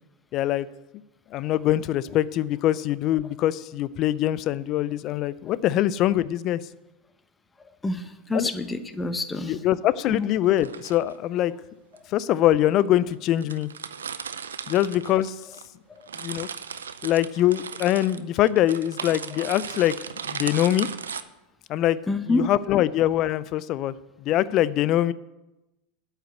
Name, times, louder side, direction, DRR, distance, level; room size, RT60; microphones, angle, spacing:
voice 1, 0.3-0.7 1.3-6.6 8.3-8.5 9.5-11.5 12.1-13.7 14.7-15.4 16.2-16.5 17.0-19.9 20.3-20.9 21.7-22.0 22.3-25.1, left 13 dB, 45° left, 18 dB, 0.4 m, -23 dB
voice 2, 7.6-9.6 10.0-10.3 15.9-16.1 22.1-22.5, left 2 dB, 15° left, 10 dB, 0.9 m, -28 dB
sound 1, 8.3-8.6 10.4-11.1 12.0-12.1 12.8-12.9 13.1-13.2 13.4-15.7 16.0-21.2, right 7 dB, 85° right, 0.5 m, -36 dB
8.6 x 5.7 x 7.9 m, 0.99 s
hypercardioid pair, 95°, 0 cm